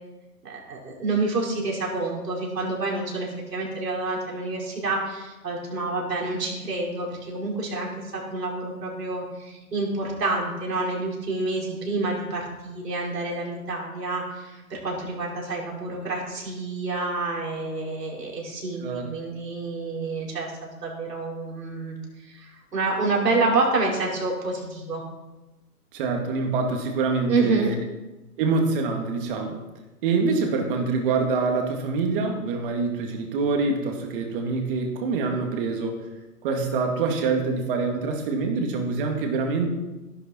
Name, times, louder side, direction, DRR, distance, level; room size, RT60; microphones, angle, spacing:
voice 1, 0.4-20.5 20.8-22.0 22.2-25.0 27.3-27.7, right 3 dB, 85° right, -2 dB, 5.2 m, -28 dB
voice 2, 25.9-27.7 28.4-29.6 30.0-36.0 36.4-39.7, right 4 dB, 35° right, 3 dB, 2.3 m, -25 dB
13.5 x 12.0 x 4.5 m, 1.1 s
hypercardioid pair, 150°, 47 cm